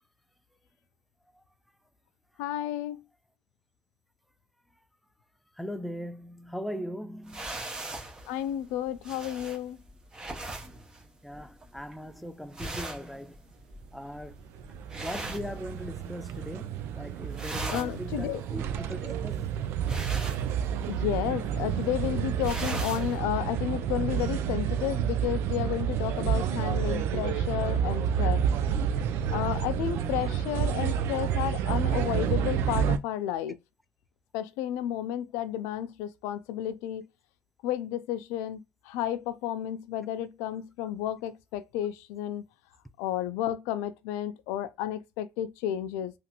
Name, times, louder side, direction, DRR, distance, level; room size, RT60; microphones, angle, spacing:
voice 1, 2.4-3.0 8.3-9.8 17.7-18.4 20.9-28.4 29.3-33.6 34.3-37.0 37.6-42.4 43.0-46.1, left 11 dB, 90° left, 0.4 m, -32 dB
voice 2, 5.6-7.5 11.2-13.4 13.9-14.3 14.9-19.6 30.0-30.3, equal, ahead, 0.3 m, -39 dB
sound 1, 7.3-16.2 16.5-16.9 17.2-23.2, right 2 dB, 15° right, 0.8 m, -40 dB
sound 2, 14.3-33.0, right 8 dB, 70° right, 0.4 m, -29 dB
2.9 x 2.5 x 2.8 m
cardioid pair, 110°, 4 cm